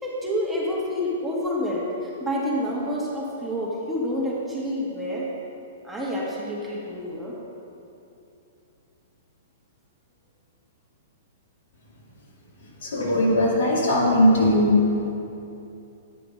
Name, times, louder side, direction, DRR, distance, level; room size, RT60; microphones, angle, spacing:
voice 1, 0.0-5.3 5.8-7.4, equal, 5° right, -6 dB, 1.6 m, -28 dB
voice 2, 12.8-14.8, left 1 dB, 60° left, -4 dB, 2.0 m, -19 dB
9.2 x 5.0 x 5.7 m, 2.7 s
figure-of-eight pair, 110°, 0 cm